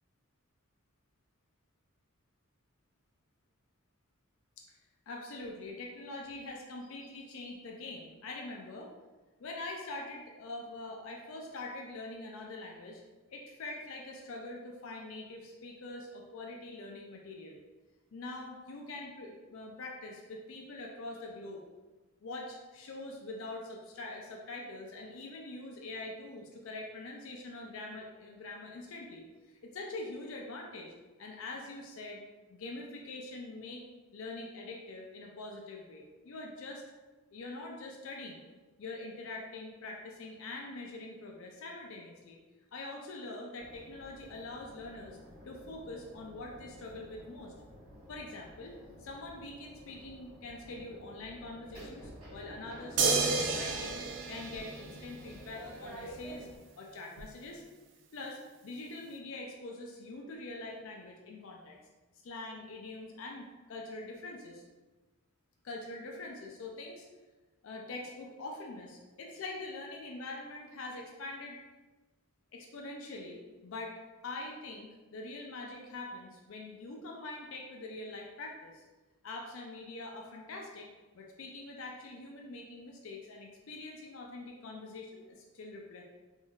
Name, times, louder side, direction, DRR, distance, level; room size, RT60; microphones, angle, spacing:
voice 1, 5.1-8.9 9.4-13.0 13.3-17.6 18.1-21.6 22.2-29.2 29.6-30.9 31.2-32.2 32.5-33.8 34.1-36.8 37.3-38.5 38.8-42.4 42.7-45.2 45.4-47.5 48.1-54.0 54.3-56.5 56.8-57.6 58.1-61.8 62.2-64.6 65.6-67.1 67.6-71.6 72.5-73.9 74.2-78.8 79.2-80.9 81.1-86.0, left 2 dB, 70° left, 0 dB, 0.4 m, -44 dB
sound 1, 43.6-56.6, equal, 25° right, 1.5 m, -50 dB
sound 2, 53.0-55.5 57.2-57.3, right 4 dB, 55° right, 0.3 m, -31 dB
3.6 x 2.6 x 2.3 m, 1.2 s
head